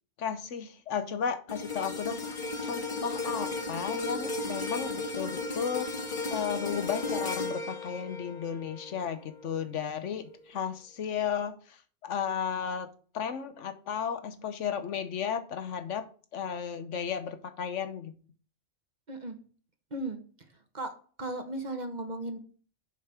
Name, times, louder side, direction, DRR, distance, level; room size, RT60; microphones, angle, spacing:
voice 1, 0.2-5.9 6.3-12.9 13.1-16.0 16.3-18.1, left 7 dB, 75° left, 10 dB, 1.2 m, -34 dB
sound 1, 1.5-9.8 10.3-10.5, left 3 dB, 40° left, 1.6 m, -35 dB
voice 2, 21.2-22.4, right 2 dB, 40° right, 6 dB, 1.2 m, -35 dB
7.2 x 5.4 x 5.8 m, 0.41 s
omnidirectional pair, 1.3 m